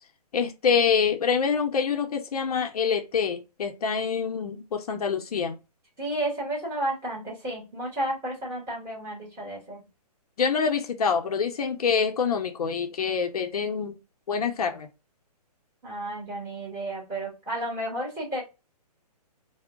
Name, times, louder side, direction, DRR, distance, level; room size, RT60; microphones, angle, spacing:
voice 1, 0.3-5.6 10.4-14.0 14.3-14.9, left 6 dB, 65° left, 0.6 m, -26 dB
voice 2, 6.0-9.8 15.8-18.4, right 1 dB, 15° right, 1.2 m, -32 dB
2.2 x 2.1 x 3.5 m
hypercardioid pair, 155°, 21 cm